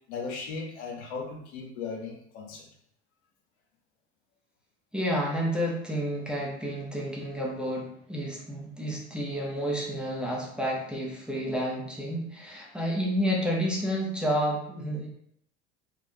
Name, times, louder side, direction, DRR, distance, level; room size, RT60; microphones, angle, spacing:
voice 1, 0.1-2.7, left 4 dB, 75° left, 0 dB, 0.8 m, -37 dB
voice 2, 4.9-15.1, equal, 5° right, -3 dB, 0.7 m, -30 dB
3.3 x 2.4 x 2.6 m, 0.73 s
hypercardioid pair, 80°, 35 cm